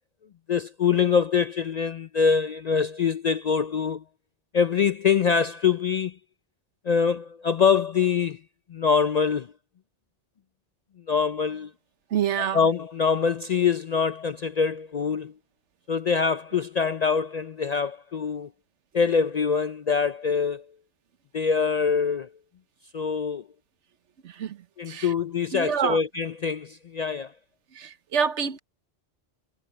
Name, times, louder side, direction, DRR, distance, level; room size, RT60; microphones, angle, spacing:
voice 1, 0.5-4.0 4.5-6.1 6.9-8.4 8.7-9.5 11.1-11.7 12.5-15.3 15.9-18.5 18.9-20.6 21.3-22.3 22.9-23.4 24.8-27.3, left 6 dB, 55° left, 0.4 m, -24 dB
voice 2, 12.1-12.6 24.2-25.1 25.5-26.0 27.7-28.6, right 7 dB, 85° right, 1.3 m, -27 dB
omnidirectional pair, 1.2 m